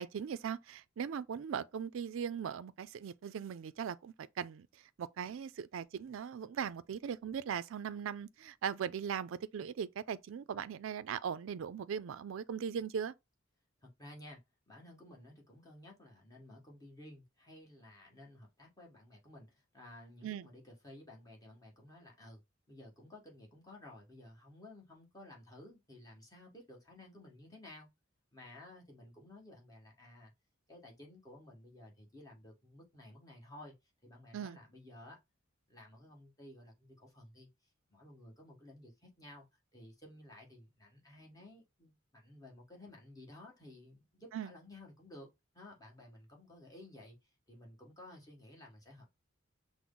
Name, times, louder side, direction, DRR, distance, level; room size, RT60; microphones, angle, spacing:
voice 1, 0.0-4.7 5.0-13.1 20.2-20.5 34.3-34.6 44.3-44.5, right 7 dB, 70° right, 0.4 m, -39 dB
voice 2, 13.8-14.4 14.7-22.4 22.7-27.9 28.3-30.3 30.7-33.7 34.0-35.2 35.7-37.5 37.9-39.5 39.7-45.3 45.5-49.1, left 1 dB, 20° left, 1.3 m, -55 dB
6.1 x 2.0 x 3.7 m
head